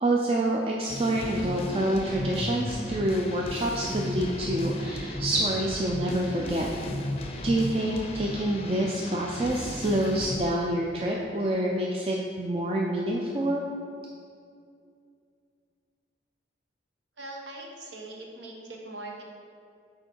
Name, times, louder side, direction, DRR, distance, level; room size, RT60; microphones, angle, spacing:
voice 1, 0.0-6.7 7.4-13.7, right 1 dB, 30° right, -1 dB, 0.4 m, -27 dB
sound 1, 0.9-10.4, left 1 dB, 35° left, 0.5 m, -34 dB
voice 2, 17.2-19.2, right 2 dB, 75° right, 0 dB, 1.1 m, -41 dB
6.6 x 4.7 x 4.5 m, 2.3 s
head